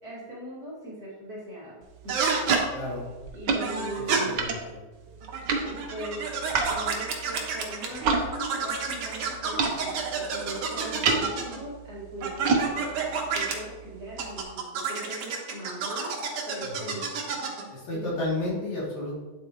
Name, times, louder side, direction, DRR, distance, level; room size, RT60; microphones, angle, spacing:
voice 1, 0.0-2.3 3.3-4.4 5.6-6.3 6.6-16.1 16.4-17.0 17.9-18.2, right 1 dB, 30° right, -8 dB, 2.7 m, -40 dB
sound 1, 1.8-8.3 8.5-14.4, right 4 dB, 75° right, 1.0 m, -32 dB
sound 2, 2.1-2.6 3.6-4.2 5.2-8.0 8.3-11.6 12.2-13.5 14.2-17.6, right 5 dB, 60° right, 2.0 m, -30 dB
voice 2, 2.7-3.1 4.0-4.8 16.6-16.7 17.7-19.2, left 1 dB, 65° left, -8 dB, 4.3 m, -32 dB
9.6 x 8.0 x 3.1 m, 1.3 s
omnidirectional pair, 3.5 m